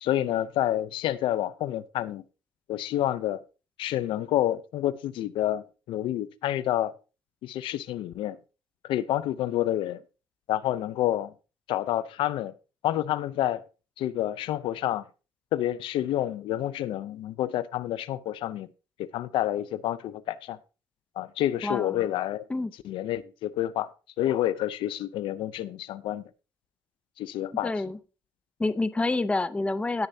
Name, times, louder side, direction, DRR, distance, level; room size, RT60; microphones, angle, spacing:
voice 1, 0.0-2.2 2.7-3.4 3.8-6.9 7.4-8.4 8.8-10.0 10.5-11.3 11.7-12.5 12.8-13.6 14.0-15.0 15.5-18.7 19.0-20.6 21.2-22.5 22.8-23.9 24.2-26.2 27.2-27.7, left 13 dB, 80° left, 0.6 m, -28 dB
voice 2, 21.6-22.0 22.5-22.7 27.6-28.0 28.6-30.1, left 2 dB, 15° left, 0.7 m, -28 dB
17.0 x 6.7 x 2.7 m
cardioid pair, 110°, 9 cm